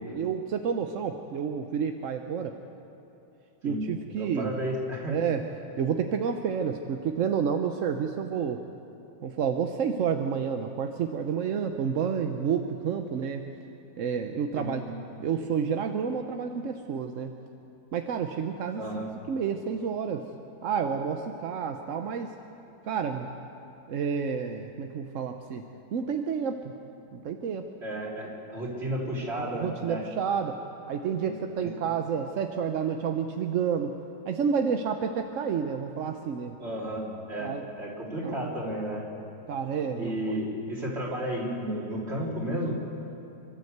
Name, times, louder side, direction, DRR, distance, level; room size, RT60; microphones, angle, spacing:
voice 1, 0.1-2.6 3.6-4.6 5.1-5.5 5.8-8.6 9.2-13.5 14.0-14.9 15.2-17.3 17.9-20.3 20.6-22.3 22.9-23.3 23.9-25.6 25.9-26.6 27.1-27.7 29.3-30.6 30.9-34.0 34.3-36.6 37.4-37.7 38.2-38.5 39.5-40.4, right 7 dB, 55° right, 6 dB, 0.9 m, -30 dB
voice 2, 4.2-5.2 14.6-14.7 18.8-19.1 27.8-30.0 31.2-31.3 31.6-31.7 36.6-39.1 40.0-42.7, right 1 dB, 35° right, -4 dB, 3.7 m, -33 dB
26.5 x 12.5 x 8.0 m, 2.9 s
omnidirectional pair, 1.9 m